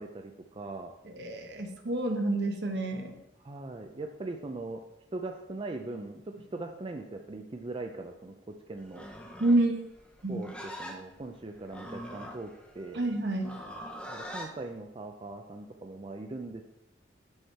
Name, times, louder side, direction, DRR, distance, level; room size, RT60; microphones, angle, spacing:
voice 1, 0.0-0.9 3.4-4.8 5.1-9.1 10.3-10.5 10.8-13.1 14.1-16.6, right 2 dB, 30° right, 4 dB, 0.5 m, -40 dB
voice 2, 1.0-3.2 9.4-9.8 10.2-10.5 12.9-13.5, right 2 dB, 65° right, 5 dB, 1.1 m, -28 dB
Livestock farm animals working animals, 8.8-14.5, equal, 5° left, 0.9 m, -43 dB
6.4 x 6.2 x 4.3 m, 0.86 s
head